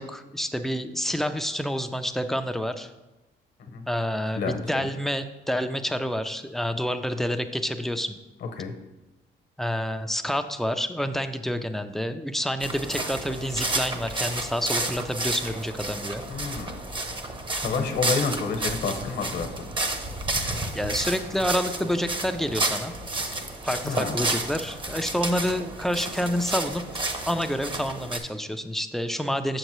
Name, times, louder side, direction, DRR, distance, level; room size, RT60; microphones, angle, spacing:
voice 1, 0.0-2.9 3.9-8.2 9.6-16.2 17.6-17.9 20.8-22.9 23.6-26.8 27.3-29.6, equal, ahead, 8 dB, 0.4 m, -28 dB
voice 2, 4.3-4.9 8.4-8.7 16.3-16.7 17.5-19.7 23.8-24.2, left 5 dB, 60° left, 5 dB, 1.0 m, -29 dB
sound 1, 12.6-28.2, right 2 dB, 25° right, 0.8 m, -31 dB
7.1 x 6.5 x 3.1 m, 1.0 s
cardioid pair, 90°, 20 cm